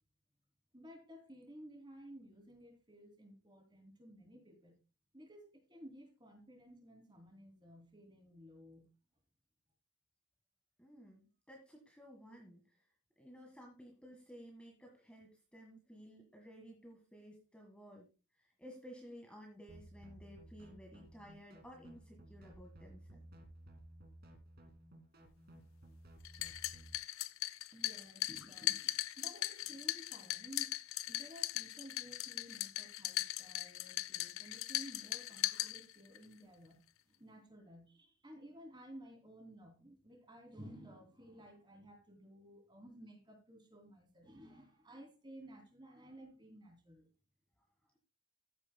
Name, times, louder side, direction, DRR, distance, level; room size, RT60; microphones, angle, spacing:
voice 1, 0.7-4.8 5.1-8.9 27.7-30.8 31.1-36.8 37.2-47.1, equal, 20° right, 4 dB, 2.8 m, -55 dB
voice 2, 10.8-12.6 13.2-18.1 18.4-23.2, equal, 5° left, 1 dB, 1.6 m, -55 dB
sound 1, 19.7-27.0, right 1 dB, 45° right, 2.3 m, -57 dB
sound 2, 26.2-36.2, left 15 dB, 65° left, 0.4 m, -39 dB
14.0 x 9.1 x 2.2 m, 0.31 s
head